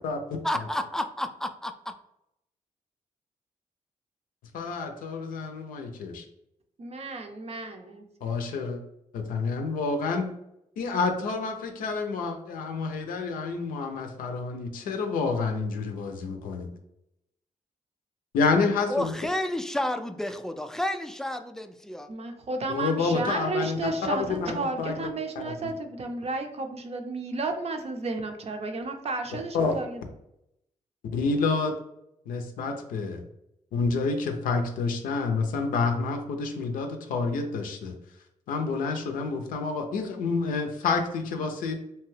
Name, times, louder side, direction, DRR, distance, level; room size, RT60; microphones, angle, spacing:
voice 1, 0.4-1.9 18.9-22.1, left 1 dB, 5° left, 7 dB, 0.3 m, -31 dB
voice 2, 4.5-6.2 8.2-8.8 9.1-10.3 10.8-16.7 18.3-19.1 22.7-25.5 29.5-29.8 31.1-31.7 32.3-33.2 33.7-37.9 38.5-41.7, left 4 dB, 90° left, 5 dB, 0.4 m, -28 dB
voice 3, 6.8-8.3 22.1-30.0, right 3 dB, 50° right, 5 dB, 0.5 m, -33 dB
2.8 x 2.2 x 3.1 m, 0.80 s
cardioid pair, 55°, 14 cm